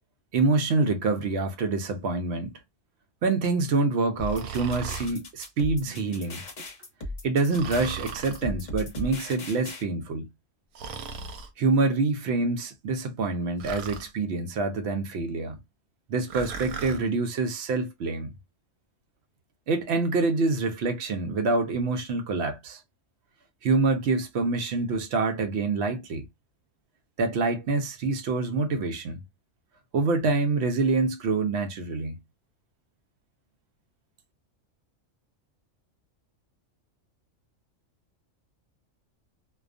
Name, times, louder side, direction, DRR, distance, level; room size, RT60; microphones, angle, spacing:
voice 1, 0.3-2.5 3.2-6.4 7.2-10.3 11.6-15.6 16.1-18.3 19.7-22.8 23.6-26.2 27.2-29.2 29.9-32.2, right 3 dB, 65° right, 0.7 m, -26 dB
sound 1, 4.2-9.8, left 2 dB, 40° left, 0.7 m, -37 dB
Breathing, 4.2-5.1 7.5-8.5 10.7-11.5 13.6-14.1 16.3-17.0, right 6 dB, 85° right, 1.0 m, -37 dB
2.3 x 2.3 x 2.4 m
omnidirectional pair, 1.4 m